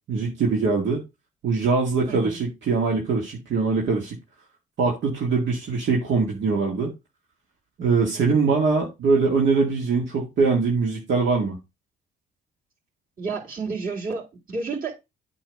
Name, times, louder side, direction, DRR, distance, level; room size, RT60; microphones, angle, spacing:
voice 1, 0.1-1.0 1.4-4.2 4.8-6.9 7.8-11.6, right 4 dB, 70° right, 2.1 m, -22 dB
voice 2, 2.1-2.4 13.2-14.9, right 4 dB, 45° right, 3.9 m, -30 dB
8.7 x 3.2 x 6.4 m
cardioid pair, 90°, 20 cm